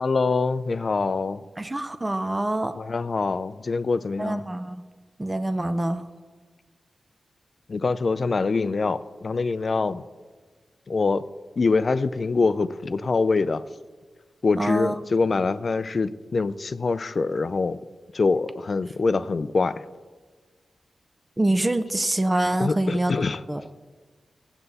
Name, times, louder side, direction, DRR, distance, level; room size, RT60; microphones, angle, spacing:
voice 1, 0.0-1.4 2.8-4.4 7.7-10.0 10.9-11.2 11.6-13.6 14.4-17.8 18.1-19.9 22.6-23.4, left 4 dB, 45° left, 14 dB, 0.4 m, -24 dB
voice 2, 1.6-2.7 4.2-4.8 5.2-6.0 14.6-15.0 21.4-23.1 23.5-23.6, right 1 dB, 15° right, 10 dB, 0.5 m, -25 dB
16.5 x 7.9 x 4.1 m, 1.4 s
wide cardioid pair, 135°, 0 cm